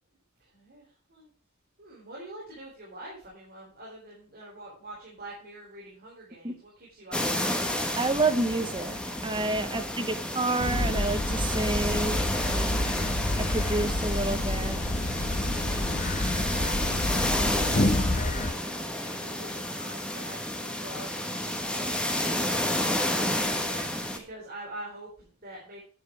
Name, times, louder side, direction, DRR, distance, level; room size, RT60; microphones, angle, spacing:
voice 1, 0.4-1.3 1.8-8.0 9.7-10.2 15.2-22.8 23.1-25.8, right 1 dB, 45° right, -4 dB, 4.0 m, -46 dB
sound 1, 7.1-24.2, left 1 dB, 5° left, 1.3 m, -31 dB
voice 2, 8.0-12.8 13.4-14.8, right 2 dB, 20° right, 9 dB, 1.0 m, -29 dB
sound 2, 10.6-18.5, left 1 dB, 35° left, 1.1 m, -29 dB
10.0 x 8.4 x 4.5 m, 0.40 s
head